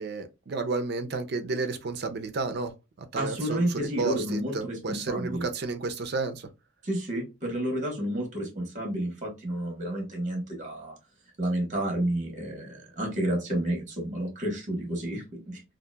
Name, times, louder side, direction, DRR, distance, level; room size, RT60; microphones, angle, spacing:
voice 1, 0.0-6.5, right 3 dB, 55° right, 0.5 m, -32 dB
voice 2, 3.1-4.8 5.1-5.5 6.8-11.0 11.4-15.6, right 1 dB, 40° right, 1.2 m, -30 dB
2.8 x 2.5 x 2.2 m
head